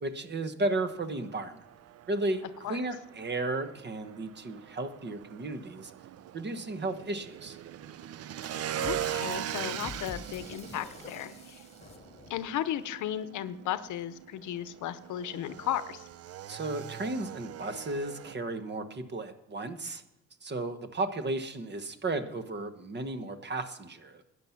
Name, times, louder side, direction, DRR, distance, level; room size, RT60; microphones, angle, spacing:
voice 1, 0.0-1.6 2.1-5.9 6.3-7.6 16.5-20.0 20.4-24.2, right 2 dB, 35° right, 10 dB, 1.1 m, -34 dB
Motorcycle / Engine, 0.9-18.3, right 11 dB, 55° right, 0.5 m, -41 dB
sound 1, 8.4-12.6, left 3 dB, 20° left, 1.4 m, -48 dB
voice 2, 8.8-11.6 12.3-16.1, left 11 dB, 75° left, 14 dB, 0.8 m, -35 dB
12.0 x 9.6 x 5.8 m, 0.90 s
cardioid pair, 90°, 30 cm